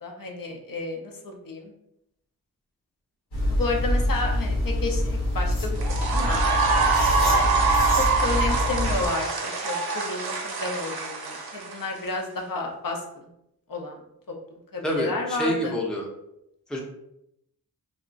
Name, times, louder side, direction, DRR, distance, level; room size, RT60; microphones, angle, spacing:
voice 1, 0.0-1.7 3.5-6.4 6.9-13.0 13.7-14.0 14.3-14.4 14.7-15.7, left 3 dB, 60° left, 1 dB, 0.6 m, -32 dB
sound 1, 3.3-9.1, left 1 dB, 90° left, 1.0 m, -26 dB
sound 2, 5.8-12.1, right 4 dB, 75° right, 0.6 m, -25 dB
voice 2, 14.8-16.1 16.7-16.8, equal, ahead, 0 dB, 0.5 m, -27 dB
2.3 x 2.1 x 3.8 m, 0.79 s
wide cardioid pair, 85°, 38 cm